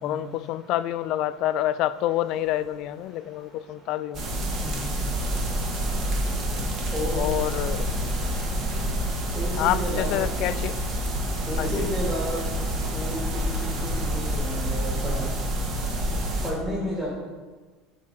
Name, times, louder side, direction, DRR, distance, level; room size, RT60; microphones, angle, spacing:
voice 1, 0.0-4.2 7.1-7.9 9.6-10.8 11.6-11.9, left 13 dB, 55° left, 15 dB, 0.3 m, -27 dB
sound 1, 4.1-16.5, equal, 40° right, 1.5 m, -28 dB
voice 2, 4.6-5.0 6.9-7.2 7.5-7.6 9.3-10.3 11.5-12.4 12.9-15.3 16.4-17.1, equal, ahead, -6 dB, 2.2 m, -32 dB
8.4 x 4.4 x 5.9 m, 1.3 s
supercardioid pair, 130°, 0 cm